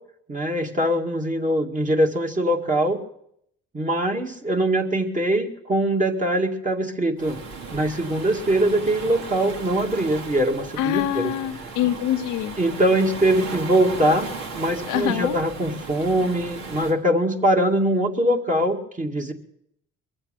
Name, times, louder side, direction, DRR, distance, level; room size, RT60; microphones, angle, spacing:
voice 1, 0.3-3.0 3.7-7.4 7.7-11.3 12.6-14.3 14.5-19.3, right 1 dB, 25° right, 2 dB, 2.2 m, -22 dB
Waves surf, 7.2-17.0, right 4 dB, 65° right, 2.4 m, -36 dB
voice 2, 10.8-12.6 14.9-15.3, left 12 dB, 90° left, 6 dB, 1.0 m, -25 dB
22.5 x 7.8 x 7.6 m, 0.74 s
cardioid pair, 90°, 30 cm